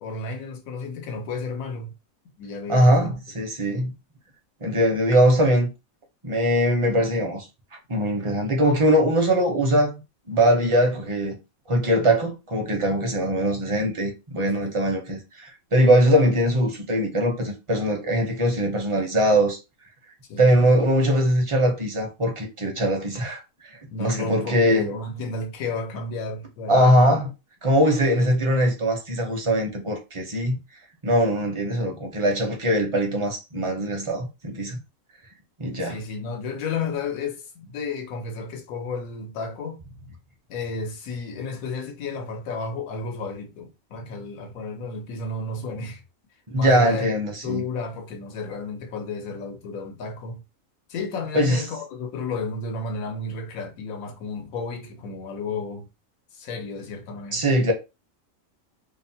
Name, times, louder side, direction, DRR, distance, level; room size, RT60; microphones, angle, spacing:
voice 1, 0.0-1.9 2.4-3.1 14.5-14.7 20.3-20.5 23.9-27.2 35.8-39.8 40.5-46.0 46.5-47.1 47.4-50.4 50.9-55.9 56.3-57.5, left 3 dB, 85° left, 1.1 m, -32 dB
voice 2, 2.7-3.9 4.6-5.7 6.2-7.4 7.9-9.9 10.3-11.4 11.7-19.6 20.4-23.4 24.0-24.9 26.7-27.3 27.6-30.6 31.0-34.8 35.6-36.0 46.5-47.6 51.3-51.6 57.3-57.7, equal, 35° right, 0.5 m, -21 dB
2.8 x 2.1 x 2.6 m
omnidirectional pair, 1.4 m